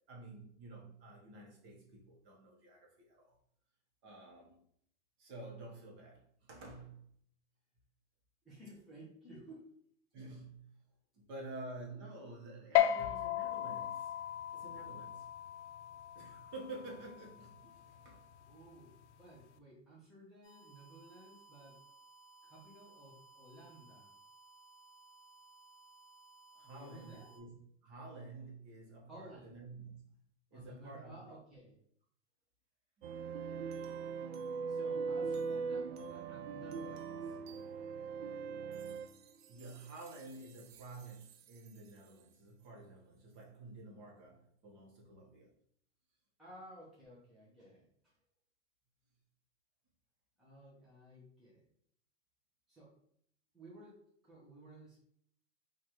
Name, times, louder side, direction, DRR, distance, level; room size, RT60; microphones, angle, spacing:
voice 1, 0.1-3.4 4.0-4.6 5.2-7.1 10.1-10.8 11.3-14.1 14.5-15.3 16.1-18.3 26.5-27.6 27.8-30.0 30.5-31.3 39.5-45.5, right 2 dB, 35° right, -1 dB, 1.0 m, -50 dB
voice 2, 8.4-9.7 18.4-21.8 22.4-24.1 26.6-27.4 29.0-29.5 30.5-31.8 34.7-37.3 46.4-48.1 50.4-51.7 52.7-52.9 53.5-55.0, right 1 dB, ahead, -8 dB, 0.6 m, -55 dB
sound 1, 12.8-19.5, left 12 dB, 70° left, 0.5 m, -37 dB
sound 2, 20.4-27.4, right 4 dB, 30° left, 1.4 m, -60 dB
sound 3, 33.0-41.9, right 5 dB, 60° right, 0.4 m, -41 dB
3.1 x 2.5 x 4.2 m, 0.67 s
supercardioid pair, 155°, 35 cm